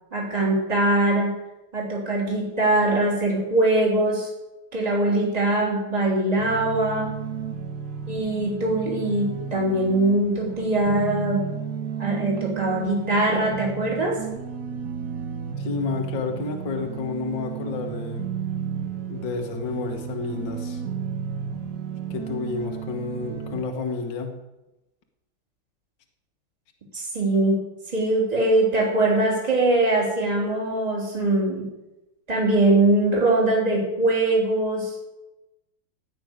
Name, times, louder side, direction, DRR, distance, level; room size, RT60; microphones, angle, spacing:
voice 1, 0.1-1.3 1.7-4.3 4.7-7.1 8.1-11.4 12.0-14.2 26.9-27.6 27.9-31.7 32.3-34.9, right 2 dB, 15° right, -3 dB, 3.4 m, -22 dB
sound 1, 6.4-23.6, right 7 dB, 55° right, 1.5 m, -33 dB
voice 2, 15.6-18.3 19.1-20.8 22.1-24.4, left 4 dB, 60° left, 3 dB, 2.0 m, -30 dB
16.5 x 6.0 x 9.5 m, 1.0 s
omnidirectional pair, 2.4 m